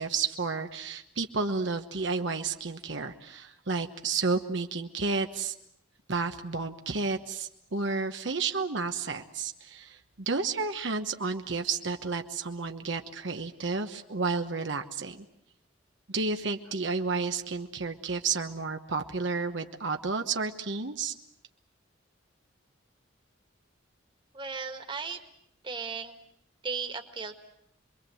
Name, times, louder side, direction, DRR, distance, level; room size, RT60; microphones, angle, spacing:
voice 1, 0.0-5.5 6.1-15.2 16.1-21.1, right 4 dB, 70° right, 5 dB, 1.1 m, -31 dB
voice 2, 24.3-25.2 25.6-26.1 26.6-27.4, right 5 dB, 25° right, 5 dB, 1.8 m, -36 dB
27.0 x 22.5 x 7.8 m, 0.75 s
head